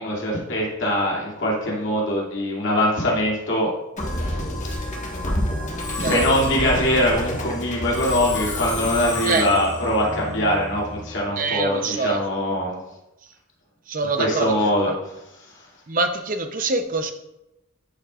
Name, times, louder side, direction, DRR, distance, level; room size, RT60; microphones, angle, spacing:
voice 1, 0.0-3.7 5.9-12.8 14.1-15.6, left 1 dB, 60° left, -4 dB, 2.5 m, -22 dB
Musical instrument, 4.0-11.3, left 1 dB, 35° left, 1.5 m, -29 dB
voice 2, 11.4-12.2 13.9-14.5 14.9-15.0 15.9-17.1, right 3 dB, 40° right, 7 dB, 0.7 m, -24 dB
11.5 x 6.1 x 2.4 m, 0.92 s
head